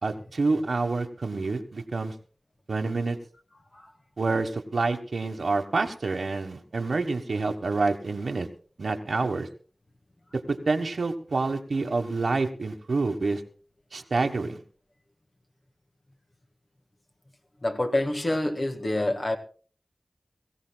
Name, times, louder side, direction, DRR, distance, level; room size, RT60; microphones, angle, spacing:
voice 1, 0.0-2.1 2.7-3.2 4.2-8.5 8.8-9.5 10.5-13.4 13.9-14.6, right 3 dB, 80° right, 1.4 m, -27 dB
voice 2, 17.6-19.4, left 1 dB, 45° left, 1.6 m, -26 dB
22.5 x 15.5 x 2.3 m
wide cardioid pair, 65°, 0 cm